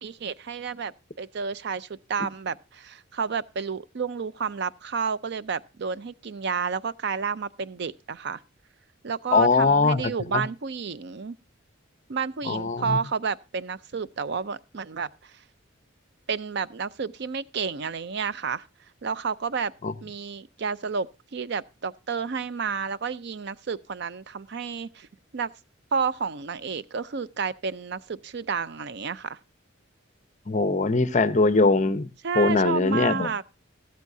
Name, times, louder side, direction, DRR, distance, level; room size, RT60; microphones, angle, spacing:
voice 1, 0.0-8.4 9.0-11.4 12.1-15.3 16.3-18.7 19.0-19.7 20.0-21.1 21.3-25.1 25.3-25.5 25.9-29.4 32.2-33.4, right 5 dB, 55° right, 0.5 m, -31 dB
voice 2, 9.3-10.4 12.5-13.0 19.8-19.9 30.5-32.1 32.4-33.4, left 3 dB, 35° left, 0.7 m, -22 dB
14.5 x 13.0 x 2.7 m
head